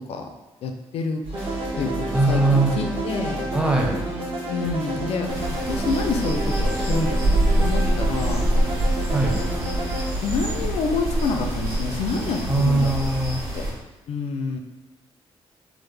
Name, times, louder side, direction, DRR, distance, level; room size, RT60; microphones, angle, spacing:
voice 1, 0.6-1.2 1.8-3.4 4.5-7.2 7.6-8.4 10.2-13.1 13.5-13.7 14.1-14.6, left 4 dB, 75° left, 4 dB, 0.4 m, -28 dB
sound 1, 1.2-13.3, right 1 dB, 85° right, 1.2 m, -35 dB
sound 2, 1.3-10.0, right 2 dB, 55° right, 0.7 m, -30 dB
voice 2, 2.1-2.7 3.5-4.0 9.1-9.4 12.5-13.4, right 2 dB, 10° right, 0 dB, 0.6 m, -20 dB
sound 3, 5.3-13.7, right 1 dB, 35° right, 1.2 m, -25 dB
3.4 x 2.0 x 3.2 m, 1.0 s
cardioid pair, 85°, 10 cm